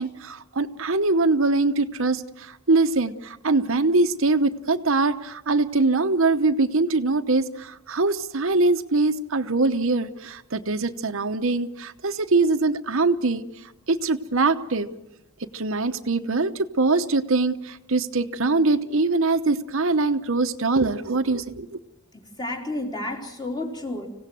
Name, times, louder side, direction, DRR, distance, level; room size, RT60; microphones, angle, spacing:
voice 1, 0.0-13.4 13.9-14.9 15.5-21.7, right 3 dB, 60° right, 8 dB, 1.0 m, -23 dB
voice 2, 22.1-24.1, left 1 dB, 20° left, 2 dB, 3.6 m, -31 dB
26.0 x 17.0 x 7.8 m, 0.94 s
head